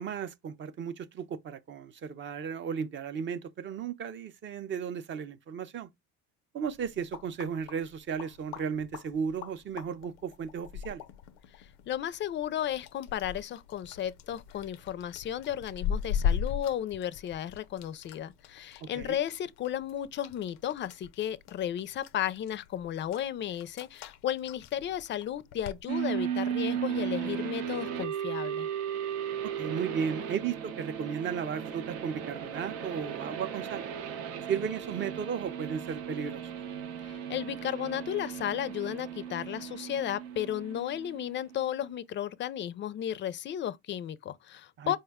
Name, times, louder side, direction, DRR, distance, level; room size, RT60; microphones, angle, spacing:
voice 1, 0.0-5.9 6.5-11.0 18.9-19.2 29.6-33.8 34.5-36.4 44.8-45.0, right 7 dB, 40° right, 0.5 m, -35 dB
sound 1, 6.7-25.8, left 7 dB, 90° left, 0.5 m, -39 dB
voice 2, 11.9-28.7 37.0-45.0, left 11 dB, 35° left, 0.4 m, -34 dB
sound 2, 25.9-41.6, right 9 dB, 90° right, 0.7 m, -36 dB
4.4 x 2.2 x 3.5 m
supercardioid pair, 100°, 32 cm